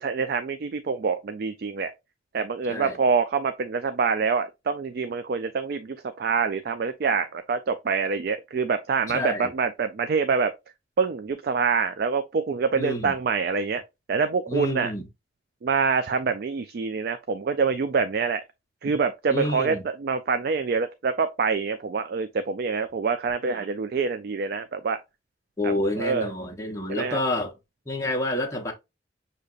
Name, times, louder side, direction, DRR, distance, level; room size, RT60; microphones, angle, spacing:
voice 1, 0.0-1.9 2.3-10.5 11.0-13.8 14.1-14.9 15.6-18.4 18.8-25.0 25.6-26.3 26.9-27.2, right 5 dB, 55° right, 0.4 m, -26 dB
voice 2, 9.1-9.5 12.7-13.1 14.5-15.1 18.8-18.9 19.3-19.9 25.6-27.5 27.9-28.7, left 1 dB, 15° left, 0.8 m, -28 dB
6.4 x 2.8 x 2.4 m
head